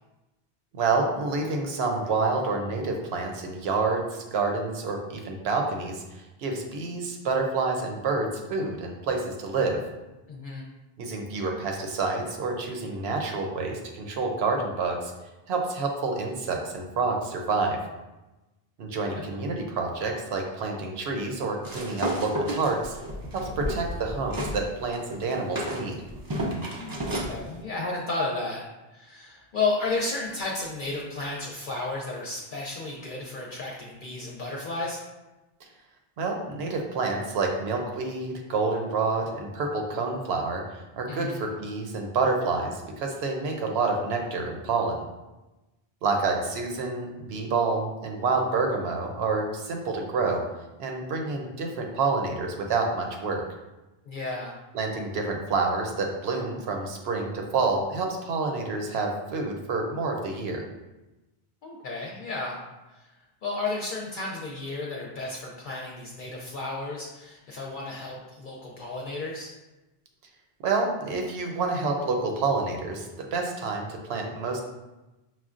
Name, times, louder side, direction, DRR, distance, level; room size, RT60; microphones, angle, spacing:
voice 1, 0.7-9.8 11.0-15.1 15.5-17.8 18.8-23.0 23.3-26.0 36.2-45.0 46.0-50.4 50.8-53.4 54.7-60.6 70.6-74.6, right 3 dB, 75° right, 2 dB, 0.9 m, -28 dB
voice 2, 10.3-10.6 19.1-19.2 23.4-23.8 26.8-28.6 28.9-35.0 41.1-41.4 54.0-54.5 61.6-62.6 62.9-63.1 63.4-69.5, left 3 dB, 60° left, -2 dB, 0.6 m, -33 dB
sound 1, 21.6-24.6 24.9-27.4, right 1 dB, 35° right, 0.4 m, -32 dB
5.8 x 2.2 x 2.4 m, 1.0 s
omnidirectional pair, 1.1 m